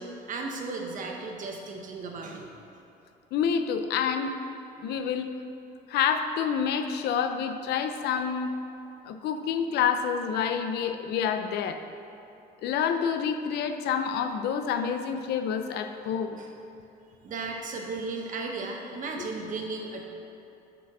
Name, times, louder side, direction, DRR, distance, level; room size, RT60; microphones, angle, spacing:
voice 1, 0.0-2.5 16.4-16.5 17.2-20.1, right 3 dB, 50° right, 1 dB, 1.2 m, -35 dB
voice 2, 3.3-4.3 4.8-5.3 5.9-8.5 9.0-11.8 12.6-16.4 19.2-19.3, left 7 dB, 75° left, 8 dB, 0.6 m, -28 dB
6.8 x 5.1 x 6.0 m, 2.9 s
cardioid pair, 110°, 17 cm